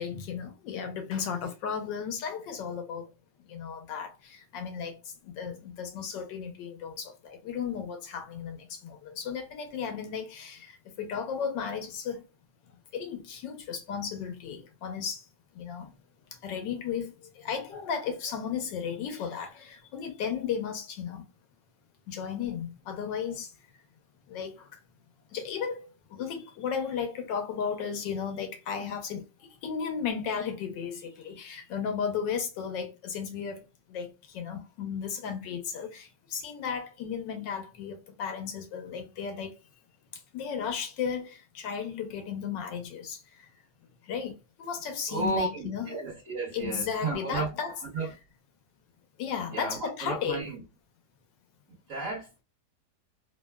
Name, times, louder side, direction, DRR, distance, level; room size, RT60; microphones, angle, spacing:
voice 1, 0.0-3.1 3.5-5.0 5.4-10.7 11.0-12.2 12.9-15.2 15.6-15.9 16.4-21.2 22.1-23.5 24.3-24.5 25.3-29.2 29.6-33.6 33.9-34.1 34.3-39.5 40.3-43.2 44.1-44.3 44.6-45.9 46.5-47.8 49.2-50.4, left 7 dB, 85° left, 1.4 m, -34 dB
voice 2, 45.1-47.5 47.9-48.1 49.5-50.6 51.9-52.4, right 3 dB, 50° right, 1.3 m, -33 dB
3.3 x 2.1 x 2.2 m
omnidirectional pair, 1.9 m